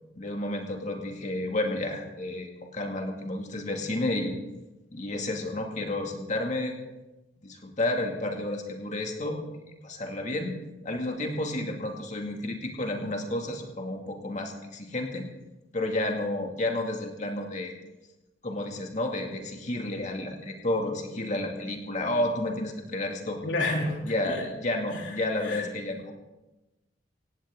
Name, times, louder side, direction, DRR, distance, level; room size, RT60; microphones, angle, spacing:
voice 1, 0.2-4.4 4.9-6.7 7.4-9.4 9.8-10.6 10.8-15.3 15.7-17.7 18.4-23.4 24.0-26.1, left 1 dB, 40° left, 2 dB, 2.3 m, -31 dB
voice 2, 23.4-24.4 24.9-25.1 25.4-25.7, left 2 dB, 80° left, -1 dB, 3.9 m, -30 dB
17.5 x 17.0 x 3.8 m, 1.0 s
head